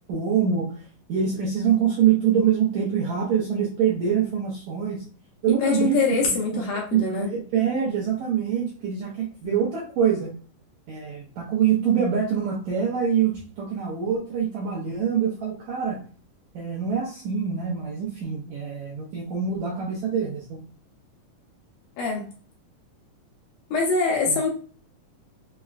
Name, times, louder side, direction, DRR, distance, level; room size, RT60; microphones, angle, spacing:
voice 1, 0.1-0.7 1.1-5.0 5.4-6.6 6.9-10.3 10.9-16.0 16.5-20.6 24.3-24.4, right 8 dB, 80° right, -3 dB, 1.6 m, -25 dB
voice 2, 5.6-7.3 9.4-9.5 22.0-22.3 23.7-24.5, left 4 dB, 75° left, 0 dB, 2.0 m, -24 dB
5.8 x 2.0 x 2.4 m, 0.41 s
omnidirectional pair, 4.1 m